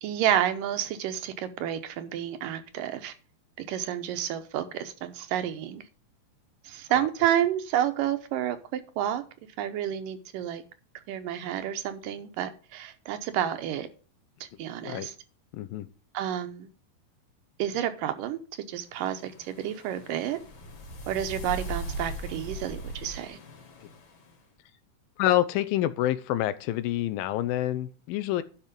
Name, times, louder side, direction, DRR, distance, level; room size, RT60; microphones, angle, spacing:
voice 1, 0.0-3.1 3.6-5.8 6.6-9.2 9.6-10.6 11.1-13.9 14.6-15.1 16.1-16.7 17.6-18.4 18.7-20.4 21.1-23.4, right 11 dB, 80° right, 9 dB, 2.6 m, -30 dB
voice 2, 15.5-15.9 25.2-28.4, left 14 dB, 90° left, 12 dB, 2.6 m, -27 dB
sound 1, 19.0-24.3, right 1 dB, 60° left, 3.4 m, -39 dB
11.5 x 5.5 x 5.2 m, 0.38 s
omnidirectional pair, 4.0 m